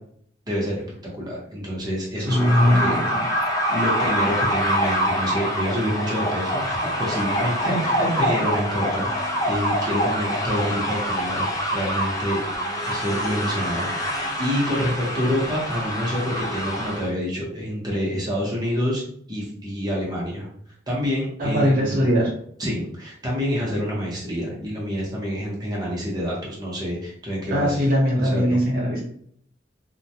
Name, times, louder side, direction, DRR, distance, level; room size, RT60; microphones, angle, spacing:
voice 1, 0.5-0.8 1.1-3.0 3.7-7.9 8.2-12.4 12.8-19.0 19.3-20.5 20.9-22.0 22.6-27.8 28.2-28.6, equal, 20° right, -4 dB, 0.8 m, -27 dB
sound 1, 2.3-17.1, equal, 20° left, 0.4 m, -25 dB
voice 2, 2.3-3.3 7.7-8.2 21.4-22.3 27.5-29.0, equal, 50° right, -3 dB, 0.9 m, -21 dB
2.2 x 2.1 x 2.8 m, 0.64 s
head